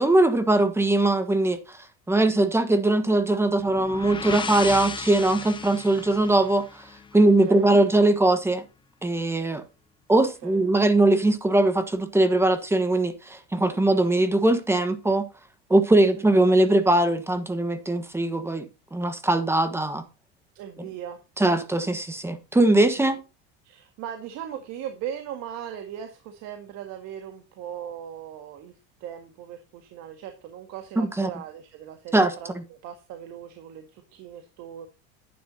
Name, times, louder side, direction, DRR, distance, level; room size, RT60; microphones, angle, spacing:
voice 1, 0.0-1.8 2.1-6.9 7.1-8.6 9.0-9.6 10.1-15.2 15.7-18.7 18.9-20.0 21.4-23.2 31.0-31.3 32.1-32.6, right 2 dB, 10° right, 1.3 m, -21 dB
sound 1, 3.6-7.4, left 5 dB, 15° left, 0.7 m, -35 dB
voice 2, 7.2-7.7 10.2-10.6 15.9-16.2 20.6-21.2 23.0-23.1 23.6-34.9, right 9 dB, 60° right, 1.8 m, -39 dB
11.0 x 9.4 x 2.8 m
supercardioid pair, 125°, 30 cm